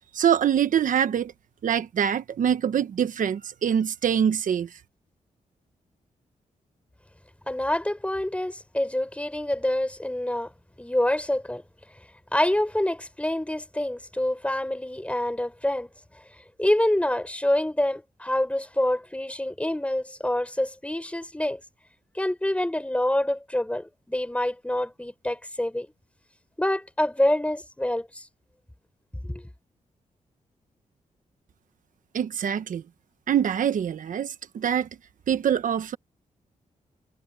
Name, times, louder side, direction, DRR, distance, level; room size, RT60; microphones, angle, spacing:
voice 1, 0.1-1.3 1.6-4.7 32.1-32.8 33.3-34.9 35.3-36.0, right 8 dB, 75° right, 1.2 m, -24 dB
voice 2, 7.5-10.5 10.8-11.6 12.3-15.9 16.6-21.6 22.1-25.9 26.6-28.2 29.2-29.5, left 1 dB, 10° left, 5.6 m, -26 dB
cardioid pair, 75°, 14 cm